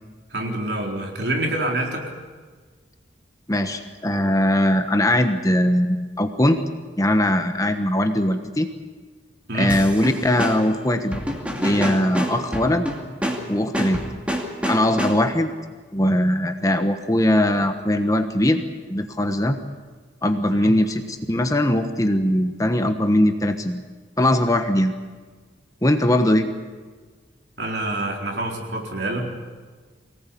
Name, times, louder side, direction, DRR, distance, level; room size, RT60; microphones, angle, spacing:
voice 1, 0.3-2.1 9.5-9.8 20.5-20.8 27.6-29.3, right 1 dB, 60° right, 1 dB, 4.1 m, -26 dB
voice 2, 3.5-6.6 7.0-8.7 9.5-11.2 11.6-12.9 13.5-14.0 14.7-15.5 15.9-18.6 18.9-19.6 20.2-23.8 24.2-24.9 25.8-26.5, left 1 dB, 20° left, 7 dB, 1.2 m, -20 dB
sound 1, 9.7-15.5, equal, 5° right, 2.5 m, -28 dB
24.0 x 18.5 x 8.5 m, 1.4 s
head